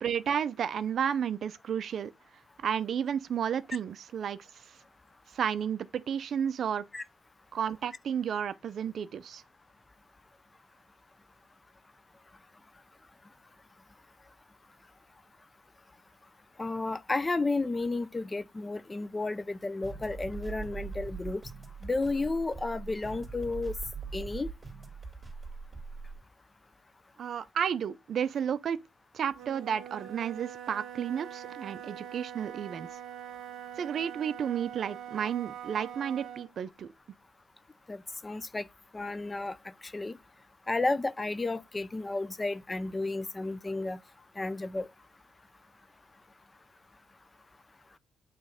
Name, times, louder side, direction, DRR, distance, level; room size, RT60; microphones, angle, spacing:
voice 1, 0.0-2.1 2.6-4.8 5.3-6.8 7.5-9.4 27.2-28.8 29.1-32.9 33.8-36.9, right 8 dB, 50° right, 0.5 m, -32 dB
voice 2, 16.6-21.4 21.8-23.7 24.1-24.5 37.9-38.7 38.9-40.2 40.7-44.0 44.4-44.9, left 3 dB, 15° left, 0.4 m, -32 dB
sound 1, 19.8-26.2, right 4 dB, 15° right, 2.8 m, -41 dB
Wind instrument woodwind instrument, 29.3-36.5, right 9 dB, 70° right, 1.3 m, -44 dB
8.7 x 3.1 x 5.0 m
cardioid pair, 125°, 0 cm